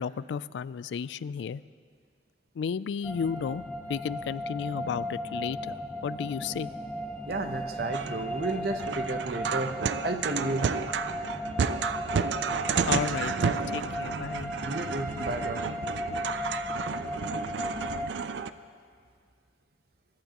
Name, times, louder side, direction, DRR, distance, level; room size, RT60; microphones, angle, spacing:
voice 1, 0.0-1.6 2.6-3.6 3.9-6.7 12.9-14.5, left 6 dB, 85° left, 18 dB, 0.3 m, -33 dB
sound 1, 3.0-18.1, left 1 dB, 10° left, 0.7 m, -36 dB
voice 2, 7.3-9.8 10.0-10.7 14.6-15.7, right 2 dB, 60° right, 7 dB, 0.9 m, -32 dB
sound 2, 7.9-18.5, right 6 dB, 80° right, 0.4 m, -32 dB
24.0 x 11.5 x 3.0 m, 2.1 s
head